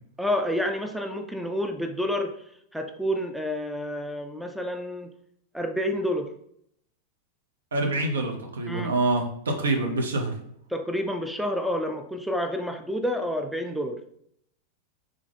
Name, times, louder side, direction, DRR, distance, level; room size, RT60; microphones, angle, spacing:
voice 1, 0.2-2.4 2.7-5.1 5.5-6.3 8.7-9.0 10.7-14.0, equal, ahead, 5 dB, 0.3 m, -29 dB
voice 2, 7.7-10.3, right 2 dB, 65° right, 3 dB, 0.7 m, -26 dB
3.6 x 3.5 x 3.4 m, 0.71 s
figure-of-eight pair, 90°, 0 cm